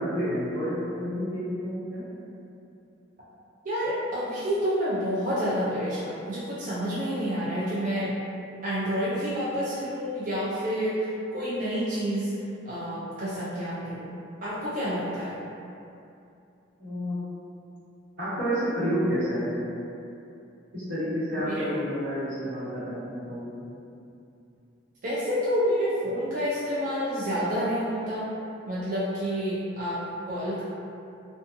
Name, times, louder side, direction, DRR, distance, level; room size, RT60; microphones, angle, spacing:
voice 1, 0.0-2.1 16.8-17.2 18.2-19.6 20.7-23.6, equal, 60° right, -12 dB, 1.1 m, -29 dB
voice 2, 3.6-8.1 8.6-12.3 12.7-14.2 14.4-15.4 21.5-21.9 25.0-28.3 28.7-30.6, equal, 45° right, -10 dB, 0.4 m, -29 dB
2.5 x 2.3 x 2.6 m, 2.7 s
head